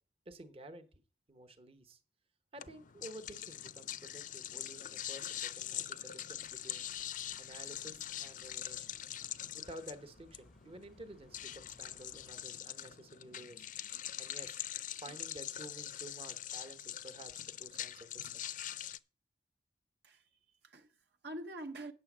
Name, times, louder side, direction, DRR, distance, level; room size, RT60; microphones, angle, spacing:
voice 1, 0.3-0.9 1.3-2.0 2.5-6.9 7.4-8.9 9.5-13.7 14.2-14.6 15.0-18.4, right 1 dB, 35° right, 0.9 m, -52 dB
sound 1, 2.6-19.0, left 11 dB, 45° left, 0.4 m, -43 dB
sound 2, 6.3-12.5, equal, ahead, 0.6 m, -67 dB
voice 2, 20.0-21.9, right 1 dB, 60° right, 0.8 m, -46 dB
8.8 x 6.7 x 6.1 m
head